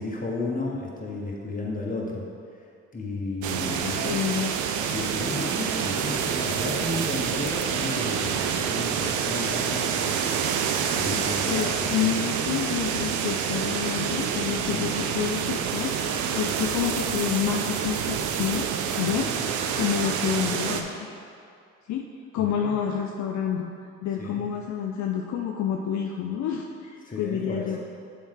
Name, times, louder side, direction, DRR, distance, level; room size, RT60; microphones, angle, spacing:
voice 1, 0.0-2.3 2.9-4.2 4.7-10.3 10.7-12.1 14.6-14.9 16.6-16.7 19.0-19.4 22.4-22.7 24.2-24.4 27.0-27.8, left 2 dB, 25° left, -3 dB, 1.5 m, -33 dB
sound 1, 3.4-20.8, right 7 dB, 75° right, 0.5 m, -27 dB
voice 2, 3.8-4.5 11.5-15.9 16.3-18.7 19.0-19.3 19.7-20.9 21.9-22.0 22.3-23.7 24.0-27.8, left 8 dB, 65° left, 1 dB, 0.5 m, -28 dB
7.0 x 4.6 x 3.8 m, 2.3 s
supercardioid pair, 55°, 30 cm